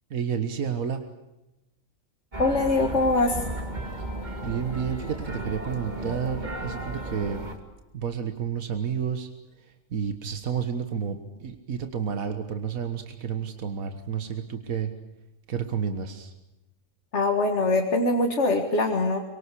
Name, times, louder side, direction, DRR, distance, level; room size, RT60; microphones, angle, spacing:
voice 1, 0.1-1.0 4.4-7.4 7.9-9.3 9.6-14.9 15.5-16.3, right 7 dB, 80° right, 7 dB, 1.9 m, -30 dB
sound 1, 2.3-7.6, right 1 dB, 30° right, 2.7 m, -34 dB
voice 2, 2.4-3.4 17.1-19.2, left 2 dB, 55° left, 3 dB, 2.2 m, -23 dB
25.0 x 23.5 x 8.4 m, 0.96 s
omnidirectional pair, 1.4 m